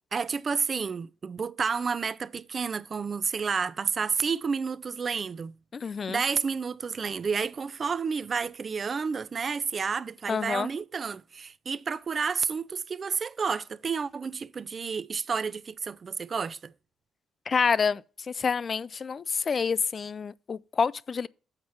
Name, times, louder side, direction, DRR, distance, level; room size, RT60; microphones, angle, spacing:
voice 1, 0.1-5.5 6.1-16.7, right 5 dB, 40° right, 0.4 m, -30 dB
voice 2, 5.7-6.2 10.3-10.7 17.5-18.0 18.3-21.3, left 5 dB, 40° left, 0.3 m, -28 dB
7.3 x 4.7 x 6.0 m
cardioid pair, 90°, 0 cm